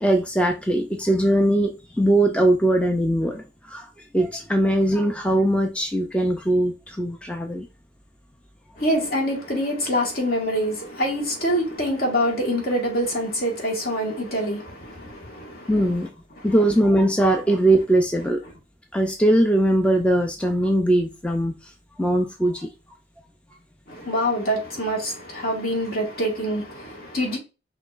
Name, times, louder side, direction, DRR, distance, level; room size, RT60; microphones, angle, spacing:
voice 1, 0.0-7.7 15.7-16.1 16.4-18.4 18.9-21.7 22.0-22.7, right 1 dB, 5° left, 0.4 m, -21 dB
voice 2, 8.8-15.9 16.4-16.5 23.9-27.4, equal, 55° left, 1.9 m, -25 dB
5.7 x 3.0 x 2.5 m
head